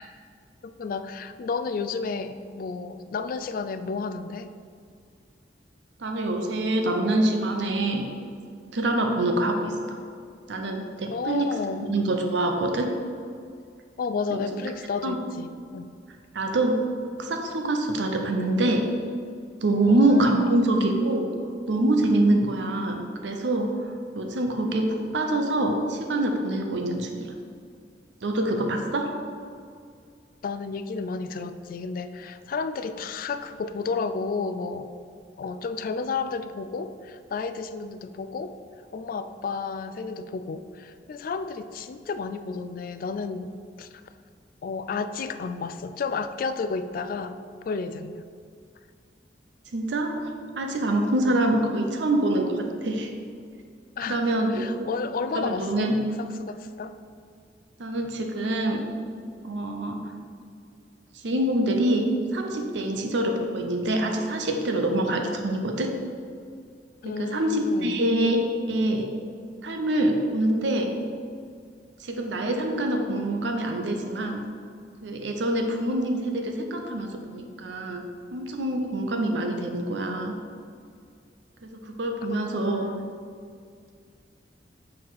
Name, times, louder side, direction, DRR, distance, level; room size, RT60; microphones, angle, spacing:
voice 1, 0.6-4.5 11.1-11.9 14.0-15.9 19.8-20.7 30.4-34.9 35.4-38.6 38.9-43.9 44.6-47.4 47.6-48.2 54.0-55.9 56.2-57.0 67.0-67.9 82.3-83.1, left 4 dB, 50° left, 11 dB, 0.3 m, -32 dB
voice 2, 6.0-8.1 8.7-10.0 10.5-11.5 11.9-12.9 14.3-14.4 15.0-15.2 16.3-16.8 17.2-18.8 19.6-21.3 21.7-23.7 24.1-27.3 28.2-29.1 49.7-50.3 50.5-53.1 54.0-54.9 55.3-56.0 57.8-58.8 59.4-60.0 61.1-65.9 67.0-68.4 68.7-69.1 69.6-70.9 72.0-74.4 75.0-78.0 78.3-80.3 81.6-82.9, right 1 dB, 85° right, 4 dB, 0.6 m, -25 dB
6.5 x 4.1 x 4.0 m, 2.2 s
head